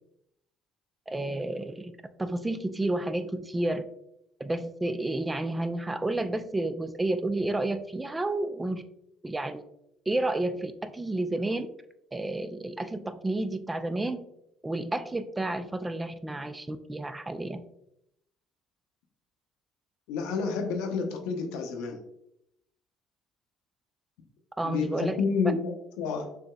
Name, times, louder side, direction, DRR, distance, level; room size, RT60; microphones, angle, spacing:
voice 1, 1.1-3.8 4.4-8.8 9.2-9.6 10.1-11.7 12.1-14.2 14.6-17.6 24.6-25.2, right 2 dB, 20° right, 11 dB, 0.4 m, -31 dB
voice 2, 20.1-22.0 24.6-26.4, left 5 dB, 75° left, 3 dB, 0.7 m, -29 dB
6.6 x 2.8 x 2.3 m, 0.78 s
hypercardioid pair, 60°, 0 cm